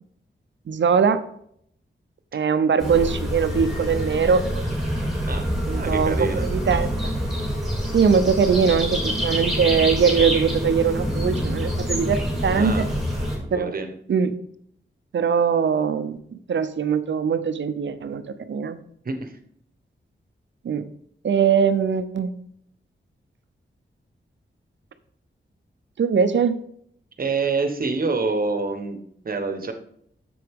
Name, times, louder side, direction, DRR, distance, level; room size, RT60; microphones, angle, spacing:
voice 1, 0.7-1.2 2.3-4.7 5.7-7.1 7.9-12.8 13.5-13.8 14.1-14.4 15.1-18.8 20.6-20.9 21.2-22.3 26.0-26.6, right 6 dB, 70° right, 11 dB, 0.6 m, -21 dB
sound 1, 2.8-13.4, equal, ahead, 3.2 m, -26 dB
voice 2, 5.3-6.5 12.5-12.9 13.4-13.9 19.0-19.3 27.2-29.7, right 4 dB, 45° right, 6 dB, 1.1 m, -27 dB
7.7 x 7.0 x 3.5 m, 0.67 s
wide cardioid pair, 140°, 20 cm